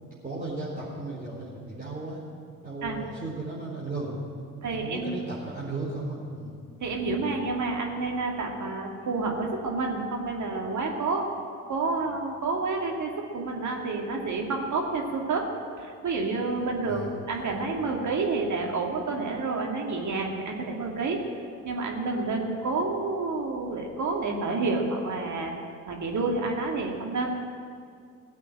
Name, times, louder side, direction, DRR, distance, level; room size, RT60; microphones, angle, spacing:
voice 1, 0.2-2.2 2.6-4.2 4.7-6.5 16.8-17.1, right 2 dB, 20° right, -7 dB, 4.4 m, -35 dB
voice 2, 4.6-5.2 6.8-11.3 11.7-15.5 15.8-25.5 25.9-27.3, right 3 dB, 40° right, 1 dB, 2.3 m, -29 dB
16.5 x 8.1 x 9.8 m, 2.3 s
hypercardioid pair, 60°, 43 cm